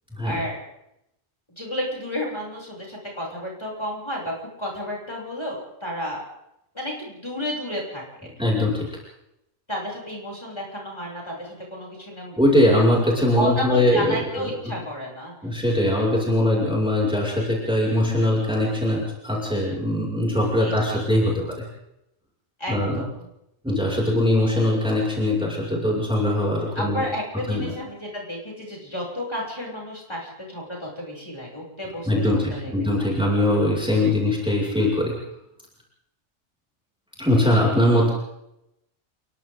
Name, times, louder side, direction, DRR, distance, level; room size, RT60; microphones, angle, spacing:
voice 1, 0.2-0.6 1.6-4.3 4.6-6.2 6.7-8.0 9.7-12.4 13.4-15.3 20.6-21.0 22.6-23.3 26.7-33.1, equal, 20° left, -4 dB, 7.8 m, -32 dB
voice 2, 8.4-8.9 12.4-14.5 15.4-21.6 22.7-23.0 23.6-27.1 27.5-27.7 32.1-35.1 37.2-38.1, left 1 dB, 5° right, -3 dB, 6.3 m, -21 dB
30.0 x 23.5 x 3.9 m, 0.83 s
omnidirectional pair, 1.3 m